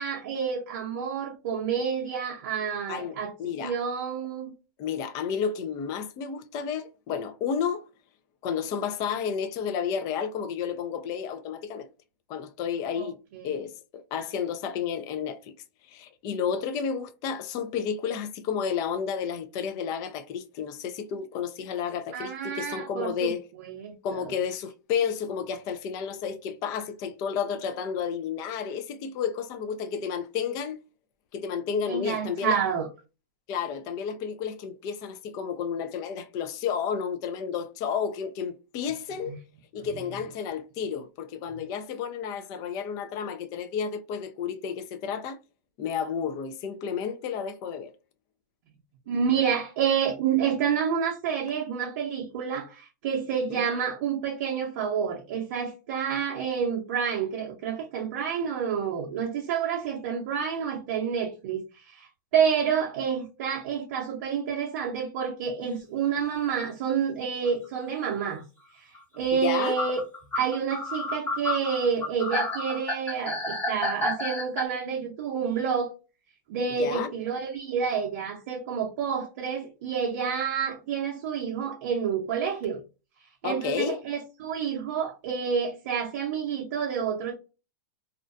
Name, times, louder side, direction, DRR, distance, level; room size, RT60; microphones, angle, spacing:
voice 1, 0.0-3.3 3.6-4.5 13.0-13.6 22.1-23.3 23.6-24.3 31.9-32.9 39.3-39.4 49.1-68.4 68.7-68.9 69.1-70.0 70.3-75.9 76.5-82.8 83.4-87.3, right 7 dB, 55° right, 0.6 m, -29 dB
voice 2, 2.9-3.7 4.8-7.8 8.4-11.9 12.3-13.2 13.4-15.5 15.9-23.4 24.0-30.8 31.3-32.6 33.5-39.4 39.7-45.4 45.8-47.9 69.3-69.8 76.8-77.1 83.4-84.0, left 7 dB, 35° left, 0.4 m, -31 dB
sound 1, 67.4-67.5 69.0-69.1 69.8-74.6, left 2 dB, 15° left, 0.8 m, -30 dB
2.4 x 2.2 x 2.5 m
hypercardioid pair, 130°, 10 cm